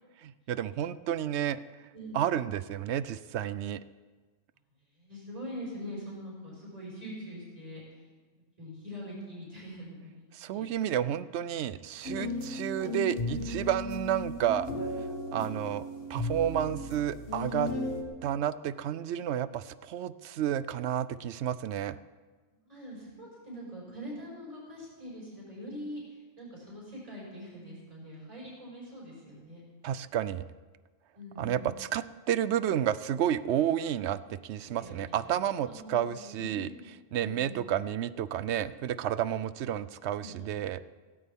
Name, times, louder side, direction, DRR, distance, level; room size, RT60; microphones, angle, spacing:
voice 1, 0.2-1.6 2.1-3.8 10.3-14.7 15.3-15.8 16.1-17.7 18.2-22.0 29.8-30.4 31.4-36.7 37.1-40.9, right 10 dB, 70° right, 15 dB, 0.8 m, -31 dB
voice 2, 1.9-2.2 4.9-8.1 8.6-10.7 13.2-13.5 15.3-15.5 22.5-29.6 31.1-31.8 34.6-36.7 37.2-37.6 40.2-40.7, equal, 30° right, -6 dB, 5.5 m, -44 dB
sound 1, 12.0-18.0, left 1 dB, 50° left, 1.6 m, -35 dB
17.5 x 17.0 x 3.6 m, 1.4 s
omnidirectional pair, 1.2 m